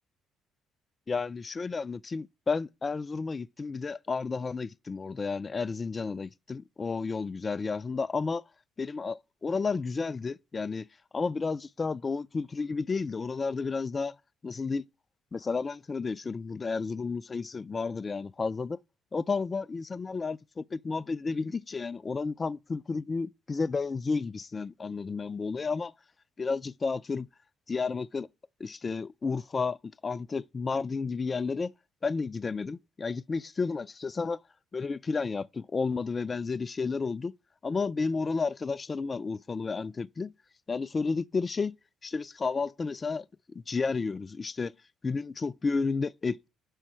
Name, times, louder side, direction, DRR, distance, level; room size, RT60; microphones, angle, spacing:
voice 1, 1.1-8.4 8.8-10.9 11.1-14.2 14.4-14.8 15.3-18.8 19.1-25.9 26.4-27.3 27.7-28.3 28.6-31.7 32.0-34.4 34.7-37.3 37.6-40.3 40.7-41.8 42.0-43.3 43.5-44.7 45.0-46.5, left 4 dB, 35° left, 0.3 m, -32 dB
5.5 x 4.4 x 6.1 m
hypercardioid pair, 50°, 0 cm